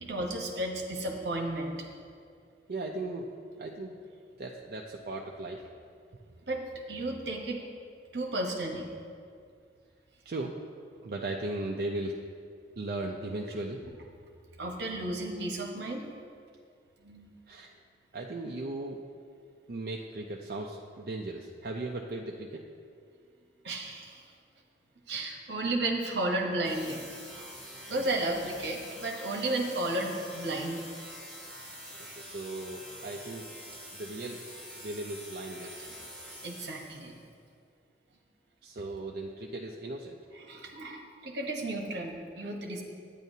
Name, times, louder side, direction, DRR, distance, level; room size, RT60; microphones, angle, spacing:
voice 1, 0.0-1.7 6.5-7.6 8.1-8.9 14.6-16.0 17.0-17.3 23.6-24.2 25.1-27.0 27.8-30.8 36.4-37.1 40.4-42.8, right 2 dB, 75° right, 2 dB, 1.0 m, -33 dB
voice 2, 2.7-3.3 3.6-4.0 4.4-5.6 10.3-10.6 11.0-12.2 12.8-13.8 17.5-17.7 18.1-19.0 19.7-22.6 27.9-28.1 32.2-33.5 34.0-34.4 34.8-35.9 38.6-40.2, right 2 dB, 55° right, 0 dB, 0.4 m, -37 dB
sound 1, 26.6-37.2, equal, 5° left, 2.1 m, -46 dB
10.5 x 9.0 x 2.7 m, 2.3 s
head